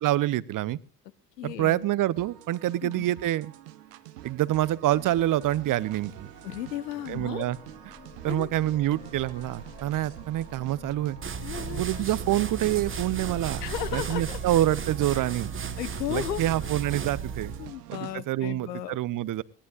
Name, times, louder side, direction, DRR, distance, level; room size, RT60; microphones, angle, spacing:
voice 1, 0.0-0.8 1.4-3.5 4.2-6.3 7.1-7.6 8.2-11.2 11.7-13.6 13.9-15.5 16.1-17.6 18.0-19.4, right 14 dB, 40° right, 21 dB, 0.7 m, -26 dB
voice 2, 1.4-1.9 2.8-3.0 6.4-7.5 8.3-8.5 11.4-12.1 13.6-14.4 15.1-15.2 15.8-16.7 17.6-19.0, left 12 dB, 80° left, 17 dB, 0.9 m, -35 dB
sound 1, 2.2-18.2, right 13 dB, 75° right, 1.1 m, -46 dB
sound 2, 5.6-15.9, left 3 dB, 25° left, 3.4 m, -51 dB
sound 3, 11.2-17.7, right 6 dB, 25° right, 1.3 m, -35 dB
21.5 x 17.0 x 2.4 m, 0.37 s
figure-of-eight pair, 60°, 48 cm